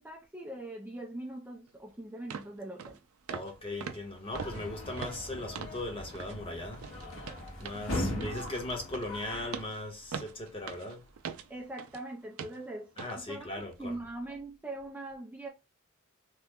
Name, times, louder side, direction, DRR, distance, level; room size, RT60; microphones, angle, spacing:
voice 1, 0.0-3.0 7.9-8.1 11.5-12.9 13.1-15.5, right 1 dB, 10° right, 0.4 m, -42 dB
sound 1, 1.7-1.8 2.3-2.5 2.8-3.0 3.3-3.5 3.8-5.8 6.1-6.4 6.7-12.0 12.4-12.6 13.0-13.2 13.6-13.7, right 6 dB, 80° right, 0.4 m, -43 dB
voice 2, 3.3-6.8 7.6-11.1 13.0-14.0, left 2 dB, 25° left, 0.9 m, -38 dB
sound 2, 4.3-9.7, left 1 dB, 75° left, 1.2 m, -39 dB
3.0 x 2.2 x 3.5 m
head